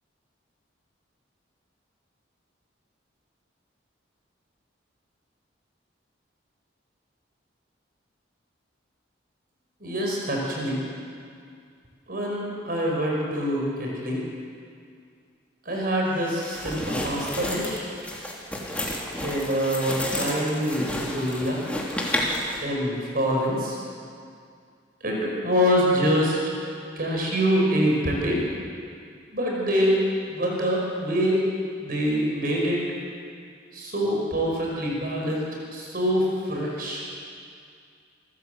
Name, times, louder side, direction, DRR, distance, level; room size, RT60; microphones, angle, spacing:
voice 1, 9.8-10.8 12.1-14.2 15.6-17.9 19.2-21.6 22.6-23.8 25.0-26.4 27.0-28.4 29.3-31.4 31.8-32.8 33.7-35.4 35.7-37.0, equal, 50° right, -2 dB, 5.4 m, -25 dB
sound 1, 16.2-22.6, left 1 dB, 5° left, 2.9 m, -31 dB
27.5 x 14.5 x 8.0 m, 2.3 s
head